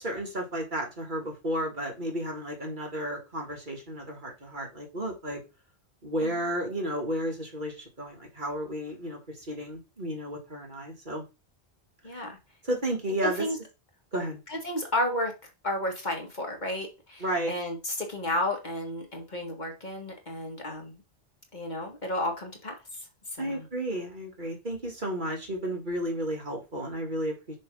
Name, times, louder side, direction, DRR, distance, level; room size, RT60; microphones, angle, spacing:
voice 1, 0.0-5.4 6.0-11.3 12.6-13.5 14.1-14.4 17.2-17.5 23.4-27.6, right 1 dB, 45° right, 1 dB, 2.1 m, -32 dB
voice 2, 12.0-12.4 13.2-13.6 14.5-15.3 15.6-21.0 21.5-22.7 23.4-23.7, left 1 dB, 45° left, 2 dB, 1.9 m, -32 dB
6.7 x 3.4 x 5.4 m, 0.26 s
omnidirectional pair, 1.1 m